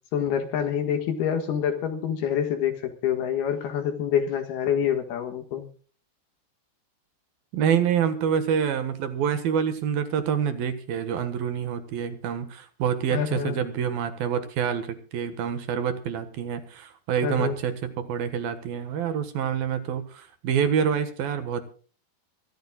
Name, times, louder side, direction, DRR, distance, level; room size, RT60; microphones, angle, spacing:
voice 1, 0.1-5.7 13.1-13.6 17.2-17.5, left 9 dB, 60° left, 7 dB, 3.1 m, -26 dB
voice 2, 7.5-21.6, right 8 dB, 65° right, 10 dB, 2.6 m, -27 dB
25.0 x 14.5 x 2.4 m, 0.41 s
omnidirectional pair, 5.8 m